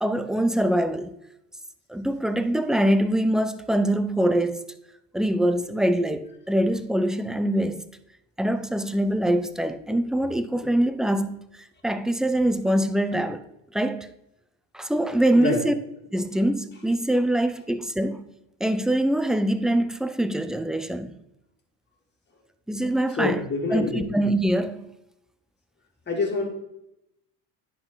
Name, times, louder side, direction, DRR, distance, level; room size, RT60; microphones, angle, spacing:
voice 1, 0.0-1.2 1.9-4.7 5.1-7.8 8.4-11.4 11.8-13.4 13.7-14.1 14.7-15.7 16.1-18.2 18.6-21.2 22.7-23.4 23.7-24.8, right 1 dB, ahead, 0.4 m, -24 dB
voice 2, 15.3-15.7 23.2-24.1 26.1-26.5, left 3 dB, 25° left, 2.4 m, -26 dB
10.0 x 4.5 x 3.9 m
supercardioid pair, 100°, 42 cm